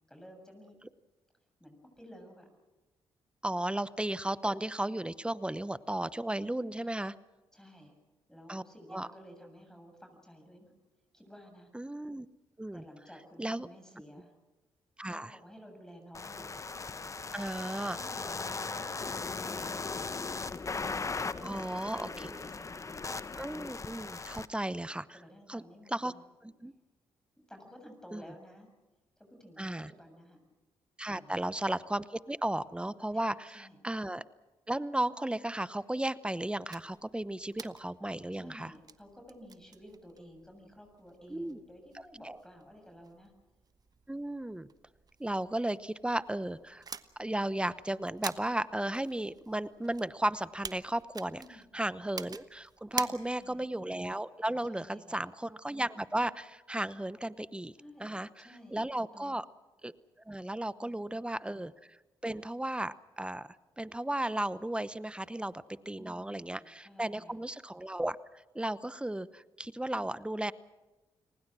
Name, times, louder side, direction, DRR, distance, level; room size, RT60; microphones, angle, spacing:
voice 1, 0.1-0.8 1.6-2.5 6.7-6.9 7.5-7.9 8.3-10.7 11.1-11.7 12.7-14.3 15.0-16.6 17.9-19.2 21.3-23.2 25.1-26.2 27.4-28.7 29.2-30.4 31.1-31.5 33.1-33.2 33.5-33.8 38.3-43.3 51.3-51.8 52.9-53.7 54.7-55.3 57.8-58.8 59.1-59.3 60.8-61.2 66.0-67.3, equal, 5° left, 4 dB, 7.4 m, -53 dB
voice 2, 3.4-7.1 8.5-8.6 8.9-9.1 11.7-12.3 12.6-12.8 13.4-13.7 15.0-15.4 17.3-18.0 21.4-22.1 23.4-25.2 25.5-25.6 25.9-26.1 26.4-26.7 28.1-28.2 29.6-29.9 31.0-34.2 34.7-38.7 41.3-41.6 41.9-42.4 44.1-44.7 45.2-46.8 47.2-51.4 51.7-57.7 58.0-59.4 59.8-59.9 60.3-61.7 62.2-63.5 63.8-70.5, right 1 dB, 10° right, 16 dB, 0.9 m, -35 dB
sound 1, 16.1-24.5, left 4 dB, 30° left, 1.0 m, -38 dB
sound 2, 36.7-53.7, right 5 dB, 40° right, 1.2 m, -48 dB
29.5 x 20.0 x 6.2 m, 1.2 s
supercardioid pair, 60°, 10 cm